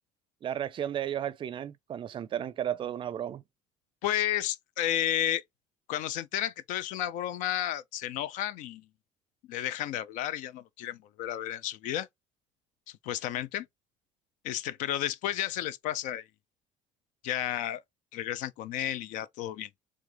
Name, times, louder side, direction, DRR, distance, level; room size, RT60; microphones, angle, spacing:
voice 1, 0.4-3.4, right 10 dB, 40° right, 0.4 m, -33 dB
voice 2, 4.0-5.4 5.9-8.8 9.5-12.1 13.0-13.7 14.4-16.2 17.2-17.8 18.1-19.7, left 12 dB, 75° left, 0.5 m, -32 dB
3.5 x 3.1 x 3.2 m
cardioid pair, 115°, 13 cm